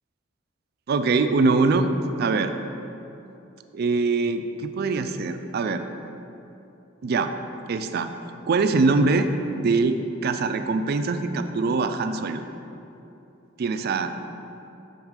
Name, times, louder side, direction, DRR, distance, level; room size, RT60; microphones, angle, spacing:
voice 1, 0.9-1.9 2.2-2.5 3.7-5.8 7.0-7.3 7.7-8.1 8.5-12.4 13.6-14.1, right 3 dB, 50° right, 9 dB, 0.4 m, -23 dB
6.3 x 4.7 x 5.0 m, 2.9 s
head